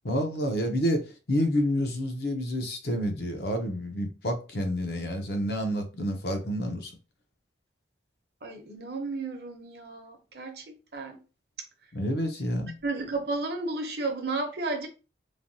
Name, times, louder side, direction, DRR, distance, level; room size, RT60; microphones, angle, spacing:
voice 1, 0.0-6.9 11.9-12.7, equal, 60° left, 0.7 m, -29 dB
voice 2, 8.4-10.6 10.9-11.2 12.8-14.9, right 3 dB, 60° right, 0.8 m, -33 dB
3.3 x 2.2 x 2.6 m
head